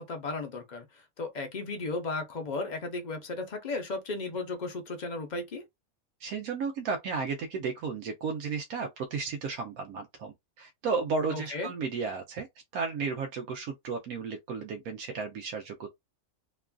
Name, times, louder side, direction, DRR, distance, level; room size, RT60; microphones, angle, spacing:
voice 1, 0.0-5.6 11.3-11.7, left 3 dB, 45° left, 0.6 m, -35 dB
voice 2, 6.2-12.5 12.7-15.9, right 5 dB, 85° right, 1.1 m, -33 dB
3.0 x 2.4 x 2.3 m
omnidirectional pair, 1.5 m